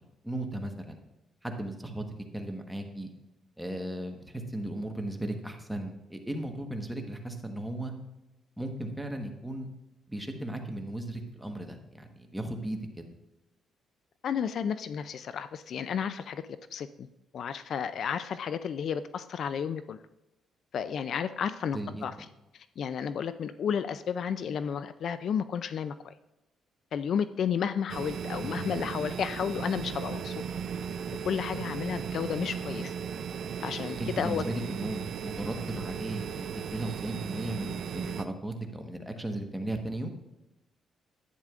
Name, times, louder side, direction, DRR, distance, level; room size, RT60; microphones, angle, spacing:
voice 1, 0.2-1.0 1.4-2.1 2.3-3.1 3.6-7.9 8.6-9.7 10.1-13.0 21.7-22.0 28.4-28.7 34.0-40.1, right 1 dB, 5° right, 4 dB, 1.2 m, -36 dB
voice 2, 14.2-17.1 17.3-20.0 20.7-22.1 22.5-26.1 26.9-30.3 31.3-32.9 33.6-34.4, left 7 dB, 65° left, 13 dB, 0.3 m, -32 dB
sound 1, 27.9-38.2, right 7 dB, 60° right, 0.4 m, -36 dB
11.0 x 8.8 x 2.4 m, 0.96 s
cardioid pair, 90°, 0 cm